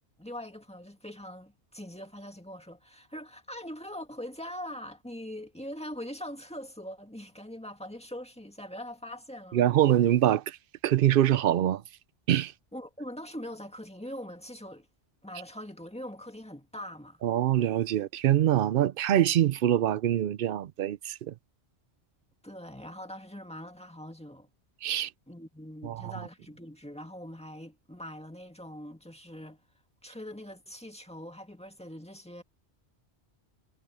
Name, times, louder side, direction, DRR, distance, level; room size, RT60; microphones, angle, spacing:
voice 1, 0.2-9.6 12.7-14.9 15.2-17.2 22.4-24.5 25.3-29.6 30.0-32.4, equal, 5° left, 1.9 m, -42 dB
voice 2, 9.5-10.6 10.8-11.8 12.3-12.5 17.2-21.3 24.8-25.1 25.8-26.1, right 11 dB, 60° right, 0.7 m, -24 dB
omnidirectional pair, 1.1 m